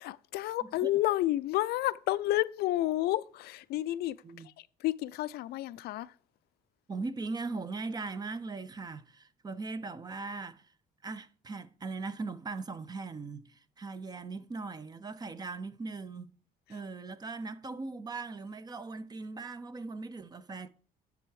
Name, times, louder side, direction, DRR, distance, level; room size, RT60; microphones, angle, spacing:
voice 1, 0.0-4.2 4.8-6.1, left 15 dB, 70° left, 0.4 m, -30 dB
voice 2, 0.6-0.9 4.2-4.5 6.9-10.6 11.0-16.3 16.7-20.7, right 3 dB, 25° right, 0.6 m, -39 dB
9.8 x 3.5 x 4.8 m
cardioid pair, 110°, 17 cm